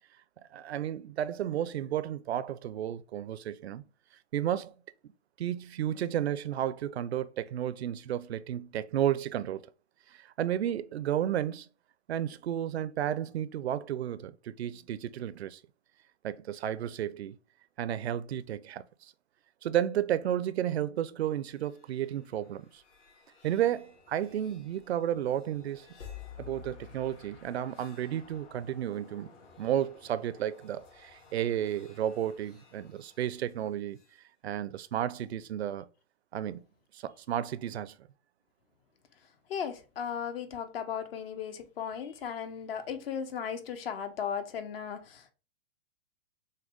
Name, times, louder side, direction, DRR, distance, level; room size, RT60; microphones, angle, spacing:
voice 1, 0.5-3.8 4.3-4.7 5.4-9.6 10.1-11.7 12.1-15.6 16.2-17.4 17.8-18.8 19.6-22.8 23.4-25.9 26.4-29.3 29.6-34.0 34.4-35.9 36.3-36.6 36.9-38.0, right 11 dB, 65° right, 0.5 m, -32 dB
sound 1, 21.3-34.2, left 7 dB, 70° left, 2.5 m, -53 dB
voice 2, 39.5-45.3, left 7 dB, 55° left, 0.9 m, -36 dB
6.4 x 2.2 x 3.4 m
figure-of-eight pair, 115°, 35 cm